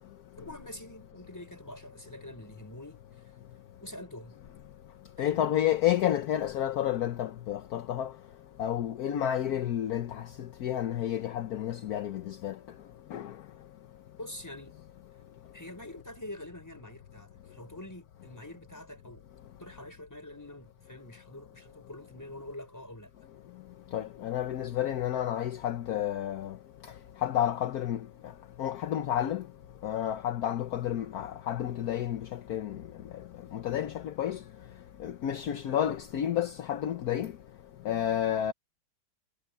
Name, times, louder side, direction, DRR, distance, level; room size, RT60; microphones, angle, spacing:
voice 1, 0.4-3.3 3.8-4.4 5.2-5.5 14.2-14.8 15.5-19.2 19.6-23.1, left 1 dB, 10° left, 5.9 m, -45 dB
voice 2, 5.2-8.1 8.6-12.6 13.1-13.4 23.9-26.6 27.2-28.1 28.6-29.4 29.8-32.8 33.1-33.2 33.5-34.4 35.0-37.3 37.8-38.5, left 11 dB, 65° left, 1.3 m, -30 dB
omnidirectional pair, 1.9 m